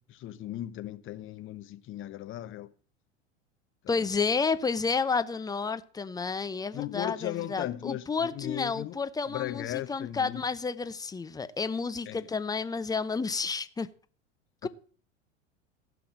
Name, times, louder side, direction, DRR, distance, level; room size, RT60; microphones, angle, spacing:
voice 1, 0.0-2.7 3.8-4.1 6.7-9.0 9.3-10.5 12.1-12.3 14.6-14.7, left 14 dB, 35° left, 1.0 m, -37 dB
voice 2, 3.9-13.9 14.6-14.7, left 5 dB, 10° left, 0.8 m, -31 dB
15.0 x 5.9 x 7.4 m
figure-of-eight pair, 85°, 36 cm